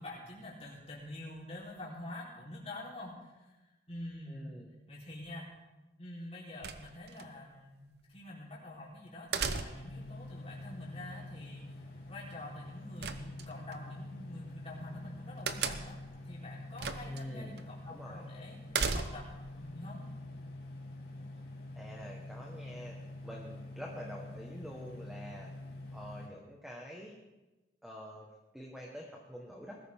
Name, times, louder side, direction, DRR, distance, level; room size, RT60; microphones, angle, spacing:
voice 1, 0.0-3.6 3.9-4.5 4.9-5.5 6.0-18.6 18.9-20.0, left 1 dB, 35° left, -5 dB, 4.0 m, -46 dB
voice 2, 4.3-4.7 17.1-18.2 21.8-23.0 23.2-25.5 25.9-27.2 27.8-28.3 28.5-29.7, equal, ahead, -2 dB, 1.5 m, -47 dB
sound 1, 6.6-7.3 9.3-10.0 13.0-13.8 15.5-16.1 16.8-17.2 17.6-17.7 18.7-19.4, right 5 dB, 65° right, 0.9 m, -35 dB
sound 2, 9.7-26.3, left 1 dB, 60° left, 2.9 m, -46 dB
20.0 x 13.5 x 3.7 m, 1.1 s
head